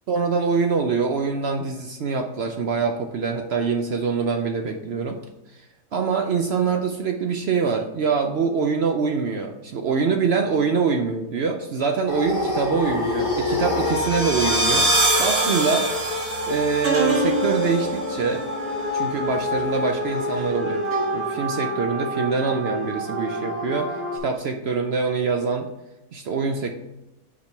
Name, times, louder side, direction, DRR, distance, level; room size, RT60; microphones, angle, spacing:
voice 1, 0.1-5.2 5.9-15.9 16.5-18.4 18.9-20.8 21.1-23.9 24.2-25.7 26.1-26.7, right 5 dB, 60° right, 4 dB, 0.7 m, -24 dB
sound 1, 12.1-20.5, left 2 dB, 25° left, 2.3 m, -31 dB
sound 2, 13.6-24.2, right 1 dB, 85° right, 2.0 m, -25 dB
5.2 x 5.0 x 4.4 m, 0.94 s
omnidirectional pair, 1.5 m